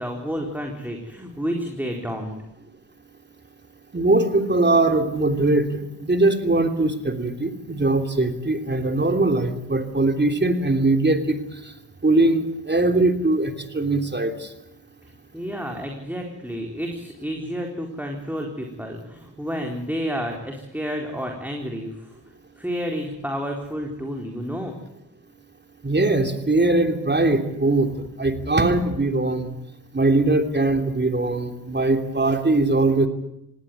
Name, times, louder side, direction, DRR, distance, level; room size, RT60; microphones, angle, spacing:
voice 1, 0.0-2.4 15.0-22.2 22.6-24.8, equal, 5° right, 1 dB, 4.2 m, -30 dB
voice 2, 3.9-11.4 12.0-14.5 25.8-27.9 28.2-29.5 29.9-33.1, right 2 dB, 25° right, 6 dB, 3.2 m, -21 dB
18.5 x 18.0 x 9.6 m, 0.86 s
supercardioid pair, 50°, 46 cm